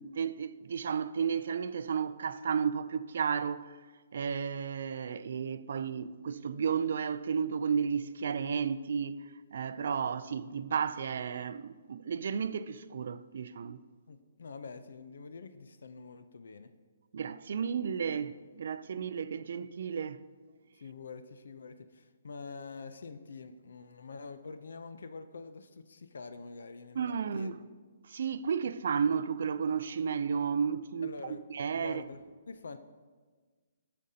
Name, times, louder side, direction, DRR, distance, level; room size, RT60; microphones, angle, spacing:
voice 1, 0.0-3.7 4.1-9.2 9.5-13.8 17.1-20.2 27.0-27.5 28.1-31.1 31.5-32.0, right 6 dB, 50° right, 0.3 m, -33 dB
voice 2, 14.1-16.7 20.7-27.5 31.0-31.5 31.7-32.8, left 4 dB, 70° left, 0.5 m, -46 dB
14.0 x 5.1 x 2.8 m
hypercardioid pair, 180°, 0 cm